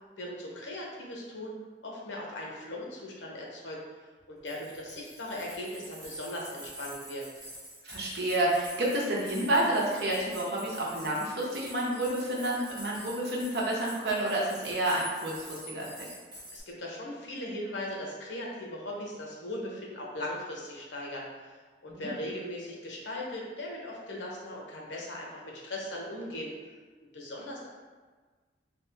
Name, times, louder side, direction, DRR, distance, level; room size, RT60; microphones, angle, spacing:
voice 1, 0.2-1.6 1.8-3.8 4.3-7.3 16.5-26.5 27.1-27.7, left 1 dB, 90° left, -2 dB, 0.9 m, -39 dB
sound 1, 4.2-4.3 4.5-16.6, right 1 dB, 25° right, 1.3 m, -46 dB
voice 2, 7.8-16.1 21.9-22.1, right 1 dB, 65° right, -4 dB, 0.8 m, -29 dB
3.4 x 2.8 x 3.4 m, 1.4 s
head